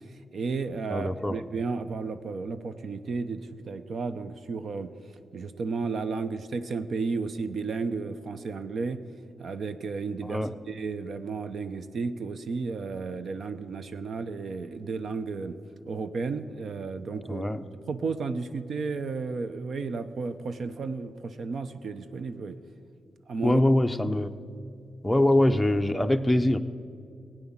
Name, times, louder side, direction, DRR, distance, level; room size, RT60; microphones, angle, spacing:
voice 1, 0.3-4.9 5.3-9.0 9.4-10.4 10.7-15.6 15.9-17.5 17.9-22.6 23.3-23.6, right 4 dB, 60° right, 11 dB, 0.6 m, -33 dB
voice 2, 0.9-1.4 10.2-10.5 17.3-17.6 23.4-24.3 25.0-26.6, left 1 dB, 5° left, 7 dB, 0.6 m, -23 dB
17.0 x 9.1 x 7.2 m, 2.5 s
wide cardioid pair, 120°, 0 cm